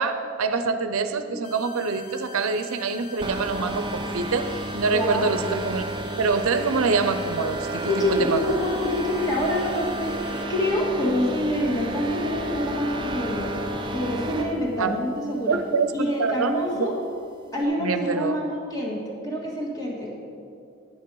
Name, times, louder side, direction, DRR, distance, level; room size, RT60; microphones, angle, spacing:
voice 1, 0.0-4.5 4.7-5.8 6.2-8.5 14.8-14.9 15.5-16.9 17.8-18.4, right 4 dB, 90° right, 9 dB, 0.6 m, -25 dB
sound 1, 1.4-10.4, left 5 dB, 40° left, 0.6 m, -45 dB
sound 2, 3.2-14.6, right 1 dB, 20° right, 0.5 m, -31 dB
voice 2, 4.8-5.3 7.7-13.5 13.9-15.6 15.9-17.0 17.5-20.1, left 1 dB, 15° left, -2 dB, 1.6 m, -26 dB
11.0 x 8.3 x 4.7 m, 2.5 s
head